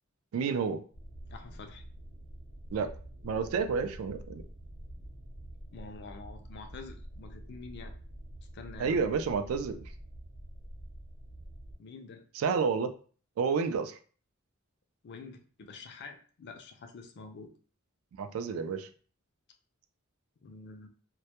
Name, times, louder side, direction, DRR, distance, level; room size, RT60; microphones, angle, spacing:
voice 1, 0.3-0.8 2.7-2.9 3.2-4.4 8.8-9.8 12.4-12.9 13.4-14.0 18.2-18.9, right 5 dB, 90° right, 7 dB, 0.3 m, -30 dB
sound 1, 0.9-11.8, right 1 dB, 60° right, 0.7 m, -47 dB
voice 2, 1.3-1.8 5.7-8.0 8.5-9.1 11.8-12.3 15.0-17.5 20.4-20.9, left 4 dB, 55° left, 5 dB, 0.4 m, -47 dB
2.1 x 2.0 x 2.8 m, 0.41 s
head